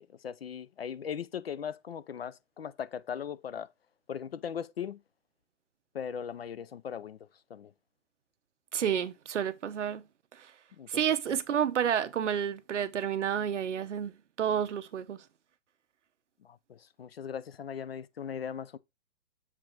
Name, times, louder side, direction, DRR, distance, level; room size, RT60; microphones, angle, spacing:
voice 1, 0.0-3.7 4.1-5.0 5.9-7.2 7.5-7.7 10.8-11.0 11.3-11.4 16.4-18.8, left 8 dB, 50° left, 0.5 m, -39 dB
voice 2, 8.7-10.0 10.4-10.5 10.9-15.2, right 8 dB, 65° right, 0.9 m, -30 dB
7.4 x 4.8 x 3.9 m
hypercardioid pair, 170°, 39 cm